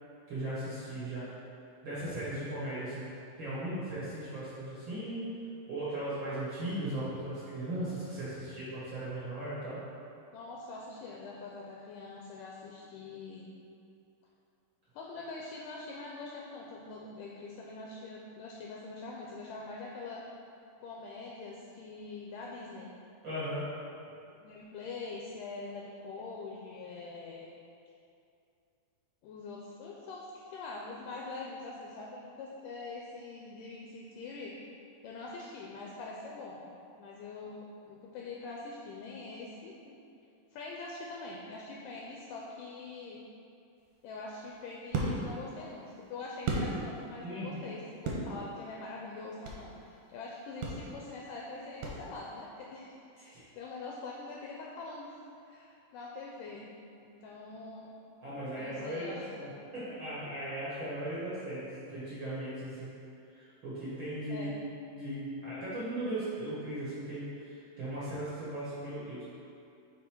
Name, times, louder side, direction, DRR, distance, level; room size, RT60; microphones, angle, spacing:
voice 1, 0.3-1.3 1.8-3.1 3.4-5.3 5.7-9.8 23.2-23.7 47.2-47.7 53.3-53.4 58.2-62.9 63.3-64.6 64.9-69.2, right 1 dB, 55° right, -11 dB, 1.4 m, -37 dB
voice 2, 10.3-13.5 14.9-20.2 20.8-22.9 24.3-27.5 29.2-34.5 35.0-36.7 37.0-40.0 40.5-43.2 44.0-56.7 57.0-57.9 58.6-59.6 64.3-64.5, left 3 dB, 85° left, -2 dB, 1.9 m, -44 dB
Soccer kicks, 43.8-47.3 47.6-49.8 50.1-50.2 50.6-52.4, right 3 dB, 70° right, 1.9 m, -36 dB
6.2 x 4.0 x 4.5 m, 2.6 s
omnidirectional pair, 4.2 m